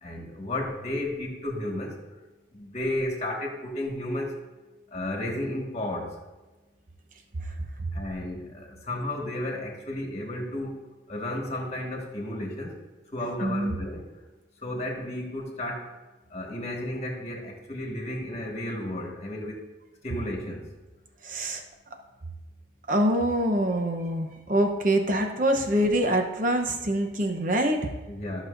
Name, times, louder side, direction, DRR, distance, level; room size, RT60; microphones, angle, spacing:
voice 1, 0.0-2.0 2.5-4.4 4.9-6.2 7.9-10.8 11.1-12.8 13.1-14.0 14.6-15.9 16.3-19.6 20.0-20.7 28.1-28.4, left 1 dB, 35° left, 0 dB, 1.6 m, -33 dB
voice 2, 13.4-13.8 21.2-21.6 22.9-27.9, right 1 dB, 45° right, 4 dB, 0.9 m, -25 dB
14.0 x 6.2 x 2.6 m, 1.2 s
head